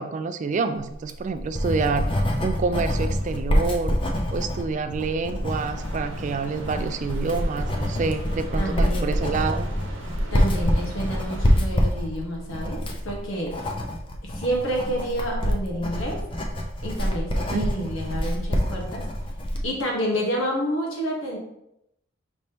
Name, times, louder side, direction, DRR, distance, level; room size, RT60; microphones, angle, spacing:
voice 1, 0.0-4.0 4.3-9.7 17.5-17.9, right 4 dB, 40° right, 9 dB, 0.3 m, -28 dB
Writing, 0.9-19.7, equal, 25° left, 0.5 m, -26 dB
sound 1, 5.5-11.6, right 2 dB, 75° right, 0.9 m, -41 dB
voice 2, 8.5-9.1 10.3-13.7 14.2-16.2 16.8-19.0 19.6-21.4, equal, 90° left, -1 dB, 1.2 m, -29 dB
5.2 x 3.4 x 2.8 m, 0.81 s
head